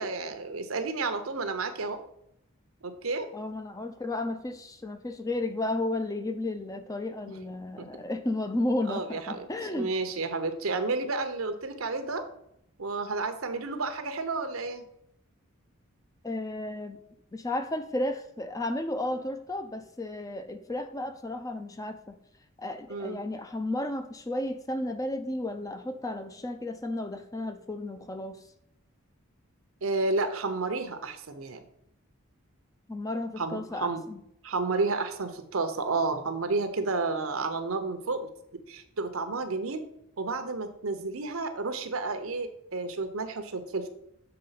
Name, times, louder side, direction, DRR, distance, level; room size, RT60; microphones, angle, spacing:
voice 1, 0.0-2.0 2.8-3.3 7.8-7.9 8.9-12.3 12.8-14.8 22.9-23.2 29.8-31.6 33.4-34.0 34.4-38.3 38.7-39.8 40.2-43.9, right 3 dB, 75° right, 8 dB, 0.8 m, -31 dB
voice 2, 3.3-9.9 16.2-17.0 17.3-22.2 22.6-28.4 32.9-34.2, left 1 dB, 15° left, 8 dB, 0.4 m, -33 dB
6.8 x 3.7 x 5.7 m, 0.75 s
head